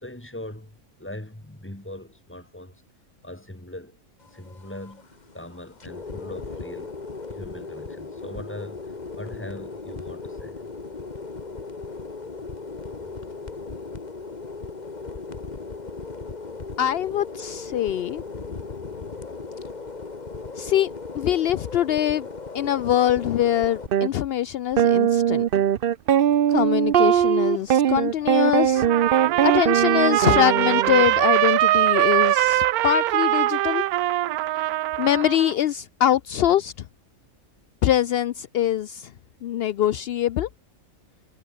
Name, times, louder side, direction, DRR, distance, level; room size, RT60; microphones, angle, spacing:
voice 1, 0.0-2.8 3.2-4.0 4.3-5.1 5.3-7.0 7.3-10.6, left 1 dB, 10° left, 2.2 m, -40 dB
sound 1, 4.2-23.9, left 4 dB, 30° left, 1.6 m, -37 dB
voice 2, 16.8-18.2 20.6-22.3 22.5-25.4 26.5-28.8 29.4-33.8 35.0-36.7 37.8-39.1 39.4-40.5, left 11 dB, 70° left, 0.6 m, -23 dB
sound 2, 23.9-24.1 24.8-31.1, right 9 dB, 55° right, 0.6 m, -20 dB
Trumpet, 28.8-35.5, right 15 dB, 85° right, 1.1 m, -22 dB
omnidirectional pair, 1.5 m